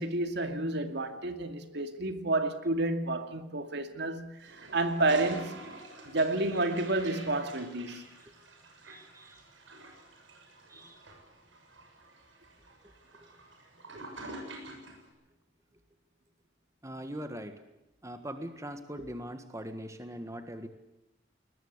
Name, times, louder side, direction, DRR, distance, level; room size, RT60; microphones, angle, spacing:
voice 1, 0.0-5.6 6.1-8.0, right 2 dB, 60° right, 2.3 m, -30 dB
Toilet flush, 4.4-15.1, right 2 dB, 80° right, 7.1 m, -48 dB
voice 2, 8.9-9.4 10.7-11.0 13.2-13.3 13.9-14.0 16.8-17.6 18.0-20.7, equal, 15° right, 1.6 m, -41 dB
22.0 x 20.5 x 8.2 m
head